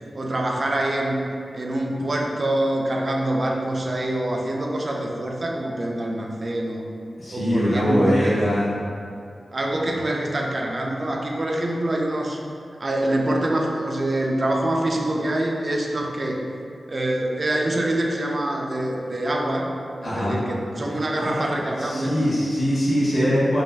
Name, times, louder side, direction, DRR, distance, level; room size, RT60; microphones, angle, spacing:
voice 1, 0.1-1.3 1.5-6.8 7.3-8.4 9.5-12.4 12.8-16.4 16.9-19.7 20.0-22.2 23.2-23.4, right 1 dB, 50° right, 0 dB, 0.4 m, -25 dB
voice 2, 7.2-8.7 9.7-9.9 20.0-20.3 20.9-21.4 21.8-23.6, equal, 70° left, -9 dB, 1.2 m, -22 dB
3.8 x 2.5 x 2.3 m, 2.4 s
wide cardioid pair, 70°, 0 cm